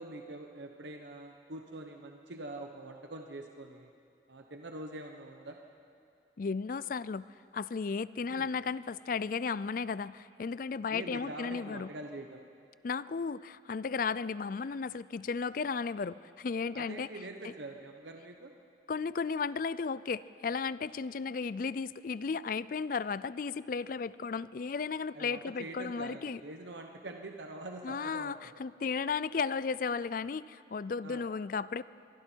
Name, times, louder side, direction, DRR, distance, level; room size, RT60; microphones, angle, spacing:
voice 1, 0.0-3.9 4.3-5.6 8.3-8.5 10.9-12.4 16.7-18.5 25.1-28.5 31.0-31.3, right 2 dB, 80° right, 3 dB, 1.1 m, -44 dB
voice 2, 6.4-7.3 7.5-11.9 12.8-17.1 17.4-17.5 18.9-26.4 27.8-31.8, left 5 dB, 50° left, 18 dB, 0.4 m, -34 dB
26.0 x 22.5 x 4.6 m, 2.5 s
head